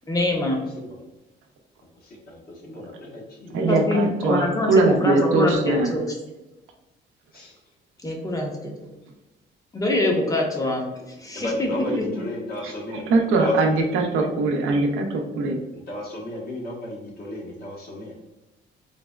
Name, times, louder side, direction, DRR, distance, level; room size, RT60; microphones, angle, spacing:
voice 1, 0.1-0.6 3.7-6.1 8.0-8.7 9.7-11.7 12.0-12.1, left 2 dB, 15° left, 0 dB, 0.7 m, -24 dB
voice 2, 2.0-3.6 7.3-7.6 11.3-13.0 13.4-13.5 15.9-18.1, left 2 dB, 50° left, -3 dB, 1.2 m, -33 dB
voice 3, 3.5-5.9 12.6-15.6, right 3 dB, 85° right, 3 dB, 0.5 m, -21 dB
3.9 x 2.0 x 2.3 m, 1.0 s
cardioid pair, 90°, 20 cm